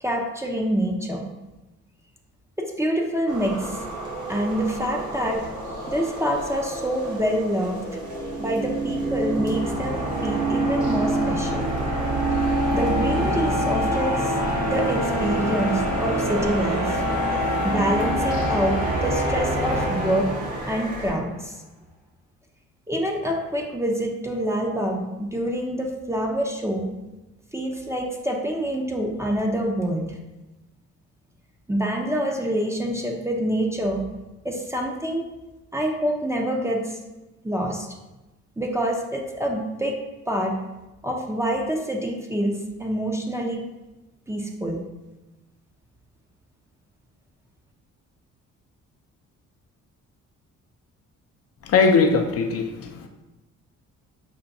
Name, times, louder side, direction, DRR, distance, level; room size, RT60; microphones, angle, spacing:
voice 1, 0.0-1.2 2.6-3.8 4.3-5.4 5.9-7.8 8.4-11.7 12.7-14.3 14.7-17.0 17.6-20.3 20.7-21.6 22.9-26.9 27.5-30.2 31.7-34.1 34.4-35.2 35.7-37.0 37.4-37.9 38.6-39.9 40.3-40.6 41.0-43.6 44.3-44.8, equal, 10° right, 1 dB, 0.5 m, -26 dB
sound 1, 3.3-21.1, right 1 dB, 85° right, 1.0 m, -35 dB
sound 2, 8.0-21.1, right 1 dB, 55° right, 1.3 m, -25 dB
voice 2, 51.6-53.1, left 4 dB, 50° left, 4 dB, 0.5 m, -20 dB
5.7 x 2.2 x 2.6 m, 1.1 s
cardioid pair, 90°, 30 cm